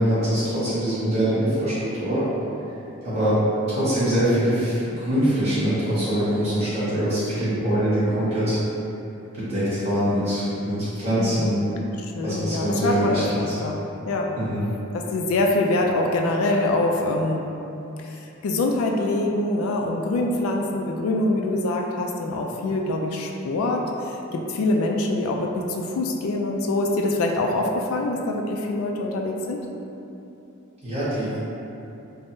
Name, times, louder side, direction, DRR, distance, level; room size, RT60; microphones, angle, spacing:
voice 1, 0.0-2.2 3.0-3.4 3.7-8.6 9.3-11.7 12.2-13.6 14.3-14.6 30.8-31.4, equal, 30° right, -14 dB, 1.3 m, -23 dB
voice 2, 11.2-11.6 12.2-14.3 14.9-17.4 18.0-23.9 24.1-29.6, left 2 dB, 75° left, 2 dB, 0.3 m, -24 dB
3.5 x 2.0 x 2.6 m, 2.9 s
head